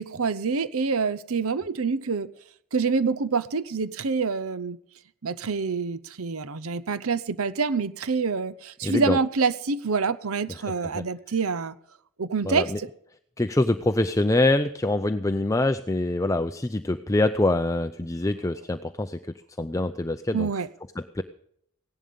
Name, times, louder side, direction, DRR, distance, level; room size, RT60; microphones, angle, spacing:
voice 1, 0.0-2.3 2.7-4.8 5.2-11.8 12.2-12.9 20.3-20.7, right 4 dB, 70° right, 0.7 m, -26 dB
voice 2, 8.8-9.2 10.9-11.0 12.4-12.8 13.4-19.2 19.6-20.5 21.0-21.2, left 2 dB, 15° left, 0.5 m, -24 dB
17.0 x 11.0 x 5.3 m
head